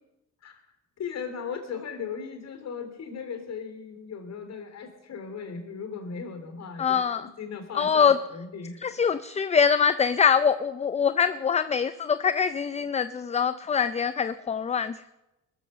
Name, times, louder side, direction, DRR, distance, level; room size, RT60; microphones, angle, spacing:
voice 1, 1.0-8.8, left 6 dB, 60° left, 5 dB, 3.2 m, -37 dB
voice 2, 6.8-7.3 7.7-8.2 8.8-15.1, left 6 dB, 20° left, 12 dB, 0.5 m, -24 dB
20.5 x 7.4 x 6.8 m, 0.99 s
cardioid pair, 90°, 30 cm